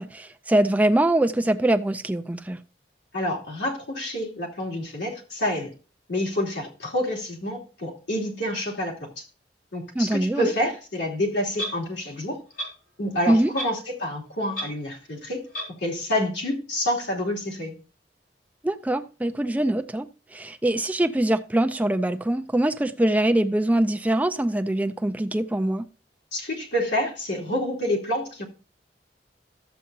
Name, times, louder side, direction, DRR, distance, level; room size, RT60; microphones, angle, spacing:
voice 1, 0.0-2.6 9.9-10.5 13.3-13.5 18.6-25.9, right 1 dB, 10° right, 0.4 m, -23 dB
voice 2, 3.1-5.7 6.1-9.2 9.7-12.4 13.0-15.5 15.8-17.8 26.3-28.4, left 1 dB, 90° left, 2.9 m, -28 dB
Clock, 11.5-11.7 12.6-12.7 13.6-13.8 14.1-14.2 14.5-14.7 15.5-15.7, equal, 50° left, 3.6 m, -31 dB
13.0 x 7.5 x 2.8 m
head